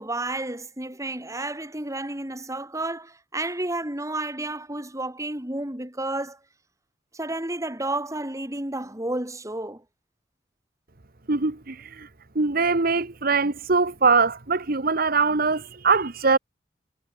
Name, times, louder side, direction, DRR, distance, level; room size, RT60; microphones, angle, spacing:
voice 1, 0.0-6.4 7.1-9.8, right 2 dB, 15° right, 3.3 m, -31 dB
voice 2, 11.3-12.1 12.3-16.4, right 4 dB, 55° right, 1.3 m, -22 dB
head